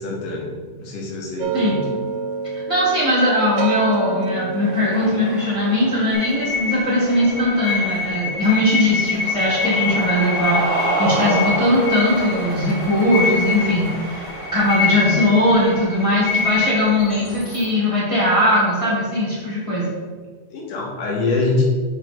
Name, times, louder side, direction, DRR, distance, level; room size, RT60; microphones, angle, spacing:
voice 1, 0.0-1.9 20.5-21.6, left 3 dB, 85° left, -2 dB, 2.8 m, -24 dB
sound 1, 1.4-10.6, right 5 dB, 80° right, 2.0 m, -30 dB
voice 2, 2.7-14.3 14.5-19.9, left 1 dB, 25° right, -8 dB, 0.7 m, -19 dB
Cheering, 4.5-17.9, right 2 dB, 45° right, 1.6 m, -30 dB
sound 2, 6.1-17.7, left 5 dB, 70° left, 3.0 m, -26 dB
5.4 x 5.0 x 5.2 m, 1.5 s
omnidirectional pair, 3.6 m